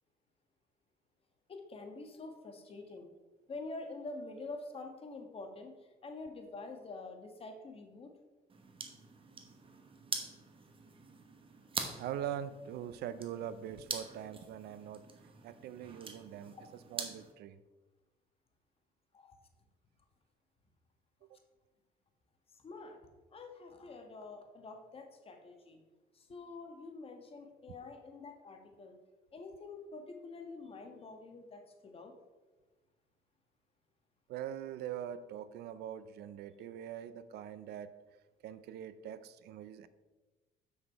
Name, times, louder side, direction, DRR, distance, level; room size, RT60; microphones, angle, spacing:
voice 1, 1.5-3.1 3.5-8.1 16.5-16.6 19.1-19.3 22.5-23.0 23.3-25.8 26.1-29.0 29.3-32.1, left 3 dB, 35° left, 4 dB, 1.3 m, -47 dB
sound 1, 8.5-17.3, right 4 dB, 30° right, 1.1 m, -45 dB
voice 2, 12.0-16.6 16.9-17.6 21.3-21.4 34.3-38.0 38.4-39.9, right 10 dB, 75° right, 14 dB, 0.5 m, -43 dB
7.4 x 6.3 x 4.6 m, 1.2 s
cardioid pair, 110°, 17 cm